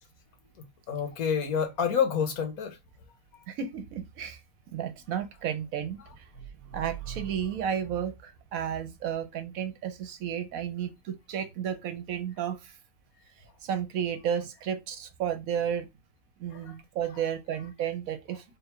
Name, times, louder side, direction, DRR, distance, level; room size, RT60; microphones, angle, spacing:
voice 1, 0.9-2.8 16.5-16.7, left 7 dB, 75° left, 1.4 m, -28 dB
voice 2, 3.5-4.4 4.7-6.3 6.6-12.8 13.6-15.9 16.4-18.6, right 8 dB, 70° right, 1.0 m, -33 dB
3.5 x 2.4 x 4.3 m
omnidirectional pair, 1.6 m